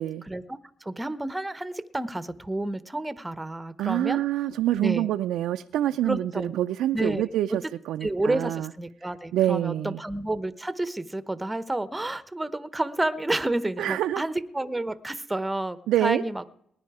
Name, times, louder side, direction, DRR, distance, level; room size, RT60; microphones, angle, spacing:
voice 1, 0.3-4.2 4.8-5.1 6.0-6.5 6.9-7.6 8.0-16.4, right 2 dB, 10° right, 16 dB, 0.9 m, -30 dB
voice 2, 3.8-8.7 9.3-10.0 13.8-14.2 15.9-16.2, right 13 dB, 85° right, 7 dB, 0.5 m, -26 dB
19.5 x 10.5 x 4.8 m, 0.71 s
cardioid pair, 90°, 0 cm